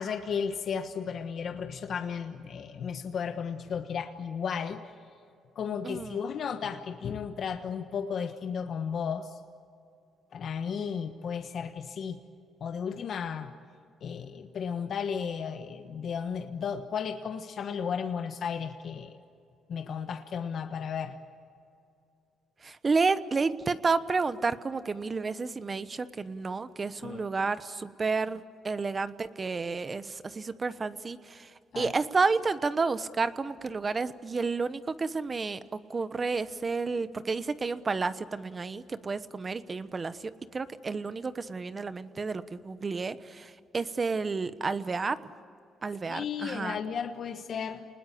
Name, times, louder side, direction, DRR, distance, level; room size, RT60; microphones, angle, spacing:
voice 1, 0.0-4.8 5.5-9.4 10.3-12.2 12.6-13.5 14.0-19.2 19.7-21.2 27.0-27.4 31.7-31.9 46.0-47.9, left 7 dB, 60° left, 6 dB, 1.3 m, -34 dB
voice 2, 5.8-6.2 22.6-31.5 31.7-45.2 45.8-46.8, right 4 dB, 35° right, 13 dB, 1.1 m, -31 dB
29.0 x 20.0 x 8.5 m, 2.5 s
cardioid pair, 90°, 0 cm